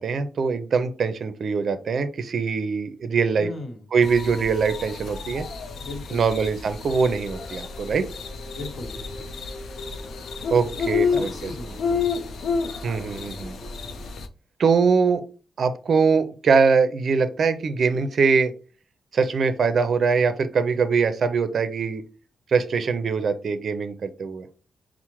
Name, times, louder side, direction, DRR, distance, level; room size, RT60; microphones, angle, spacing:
voice 1, 0.0-3.5 3.9-5.5 6.1-8.1 10.5-11.5 12.8-13.6 14.6-15.2 15.6-18.5 19.1-22.0 22.5-24.5, right 5 dB, 65° right, 11 dB, 0.4 m, -22 dB
voice 2, 3.4-3.9 5.8-6.2 8.5-9.3 10.8-12.1, left 2 dB, 50° left, 3 dB, 1.2 m, -38 dB
sound 1, 4.0-14.3, left 5 dB, 80° left, 0.4 m, -30 dB
sound 2, 7.2-14.1, left 1 dB, 25° left, 0.7 m, -43 dB
5.6 x 2.0 x 3.0 m, 0.35 s
cardioid pair, 90°, 0 cm